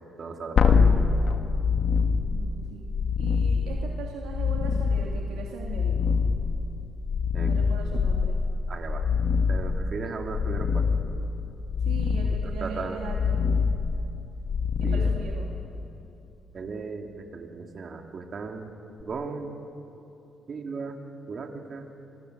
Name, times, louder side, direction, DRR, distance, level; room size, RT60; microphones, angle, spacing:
voice 1, 0.2-1.1 7.3-7.5 8.7-9.1 9.5-10.9 12.4-13.0 14.8-15.1 16.5-18.7 19.0-19.6 20.5-21.0 21.3-21.9, right 4 dB, 45° right, 3 dB, 3.2 m, -36 dB
sound 1, 0.6-15.9 19.0-19.1, left 5 dB, 55° left, 2.1 m, -25 dB
voice 2, 1.9-2.9 3.2-6.2 7.4-8.4 11.8-13.4 14.8-15.5, right 5 dB, 90° right, -2 dB, 2.9 m, -40 dB
27.5 x 23.5 x 8.3 m, 2.9 s
cardioid pair, 90°, 0 cm